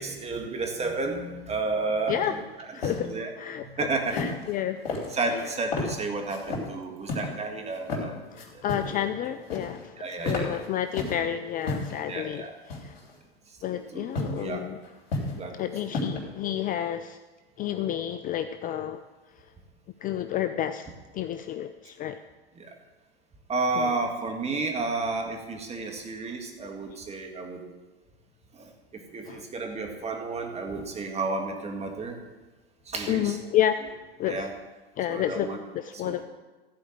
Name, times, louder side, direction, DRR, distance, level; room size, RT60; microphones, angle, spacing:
voice 1, 0.0-2.4 2.8-3.3 3.6-4.2 5.1-8.2 8.5-8.6 10.0-10.6 12.0-12.5 13.7-14.7 15.3-16.0 22.6-22.7 23.5-27.6 28.5-32.2 32.9-33.4 34.3-34.5 35.1-35.6 36.0-36.1, right 3 dB, 20° right, 3 dB, 1.9 m, -32 dB
sound 1, 2.1-2.3 2.6-3.0 4.1-4.5 4.8-5.4 5.7-5.9 6.3-6.7 7.1-7.3 7.8-8.0 8.4-9.0 9.2-9.8 10.1-11.2 11.6-12.0 12.7-13.1 14.1-14.4 14.8-15.4 15.7-16.2, left 2 dB, 75° left, 3.2 m, -32 dB
voice 2, 2.7-3.7 4.1-4.8 5.3-5.5 8.3-10.0 10.2-13.0 13.6-14.8 15.5-17.2 17.6-19.0 20.0-20.9 21.1-22.2 23.7-23.9 29.2-29.4 33.1-34.5 35.0-36.2, left 11 dB, 30° left, 10 dB, 0.4 m, -30 dB
14.5 x 4.9 x 7.9 m, 1.2 s
hypercardioid pair, 100°, 30 cm